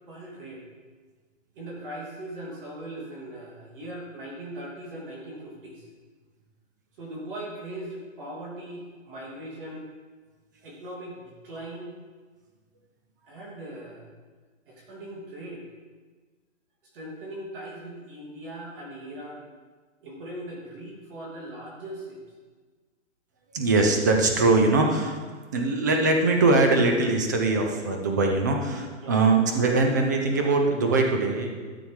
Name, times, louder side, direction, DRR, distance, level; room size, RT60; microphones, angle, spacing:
voice 1, 0.1-0.6 1.5-5.9 7.0-9.9 10.6-12.0 13.3-14.1 14.7-15.7 16.9-19.4 20.0-22.2 29.0-29.3, right 1 dB, 40° right, -4 dB, 2.8 m, -39 dB
voice 2, 23.5-25.2 25.5-31.5, right 3 dB, 15° right, 3 dB, 0.5 m, -22 dB
12.5 x 7.0 x 4.7 m, 1.4 s
hypercardioid pair, 165°, 39 cm